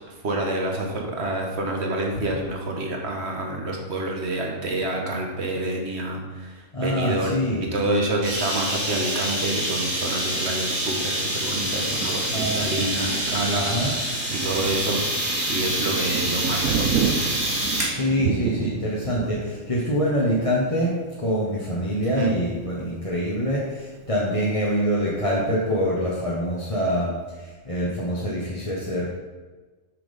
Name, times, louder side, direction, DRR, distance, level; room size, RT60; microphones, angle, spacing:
voice 1, 0.2-7.3 7.7-13.8 14.3-17.2 22.1-22.3, right 2 dB, 55° right, 0 dB, 1.7 m, -28 dB
voice 2, 6.7-7.6 12.3-12.9 13.5-13.9 17.8-29.1, equal, 25° left, -6 dB, 1.3 m, -25 dB
sound 1, 8.2-18.0, equal, 30° right, 2.5 m, -27 dB
Thunder, 8.9-23.3 23.8-23.9 24.2-24.8, right 7 dB, 90° right, 1.0 m, -33 dB
7.7 x 6.2 x 5.3 m, 1.3 s
omnidirectional pair, 1.4 m